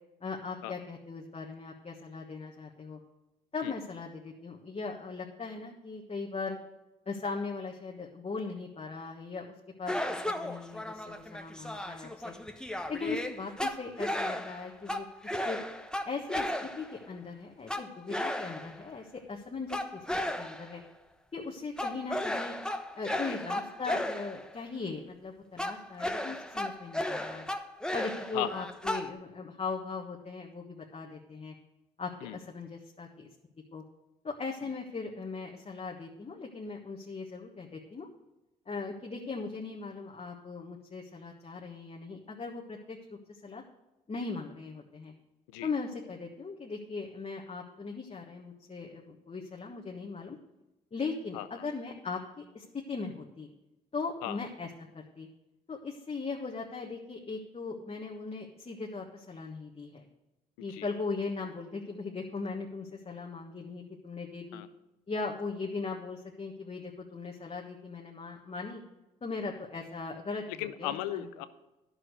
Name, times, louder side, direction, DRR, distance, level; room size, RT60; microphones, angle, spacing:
voice 1, 0.2-3.0 3.5-6.6 7.1-12.3 12.9-15.1 15.4-15.6 16.0-20.0 20.4-20.8 21.3-22.5 23.0-27.4 27.9-31.5 32.0-33.3 33.7-33.8 34.2-38.1 38.7-43.6 44.1-45.1 45.6-50.4 50.9-53.5 53.9-54.7 54.9-55.3 55.7-60.0 60.6-64.6 65.1-68.8 69.2-70.4 70.8-71.2, left 4 dB, 35° left, 0 dB, 1.4 m, -39 dB
sound 1, 9.9-17.1 17.7-18.9 19.7-20.8 21.8-24.5 25.6-29.1, left 1 dB, 5° left, 1.0 m, -35 dB
voice 2, 28.3-28.6 32.2-32.4 34.6-34.7 45.5-45.7 51.3-51.7 54.2-54.4 60.7-60.9 64.5-64.7 70.5-71.5, left 13 dB, 90° left, 13 dB, 0.6 m, -37 dB
11.0 x 6.5 x 6.6 m, 0.99 s
hypercardioid pair, 50°, 18 cm